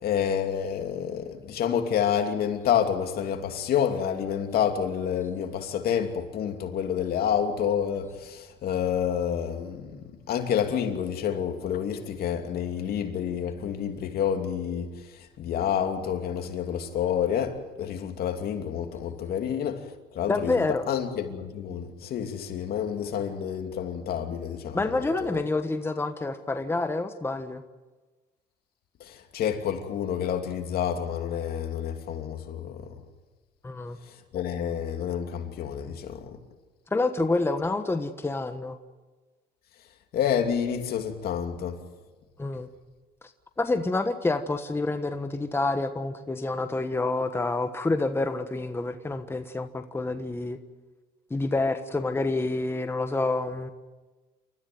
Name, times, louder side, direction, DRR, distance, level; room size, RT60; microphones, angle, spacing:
voice 1, 0.0-14.9 15.2-19.9 20.1-20.5 20.9-25.4 29.0-32.9 34.3-36.4 40.1-41.8, left 8 dB, 65° left, 2.8 m, -29 dB
voice 2, 20.3-20.8 24.7-27.6 33.6-34.0 36.9-38.8 42.4-42.7 43.6-50.6 51.3-53.7, left 2 dB, 15° left, 1.4 m, -28 dB
28.5 x 14.5 x 9.4 m
cardioid pair, 110°, 17 cm